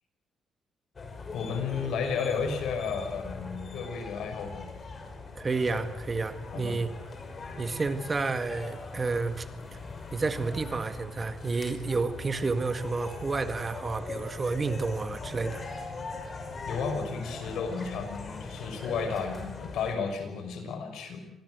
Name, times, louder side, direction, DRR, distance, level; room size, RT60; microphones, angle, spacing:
sound 1, 1.0-20.0, left 3 dB, 40° left, 6.0 m, -41 dB
voice 1, 1.3-4.6 6.5-6.8 16.6-21.3, left 5 dB, 75° left, 7 dB, 5.9 m, -33 dB
voice 2, 5.4-6.9 7.6-9.8 10.1-15.6, right 4 dB, 30° right, 10 dB, 1.9 m, -30 dB
26.0 x 19.5 x 8.2 m, 0.90 s
cardioid pair, 90°, 0 cm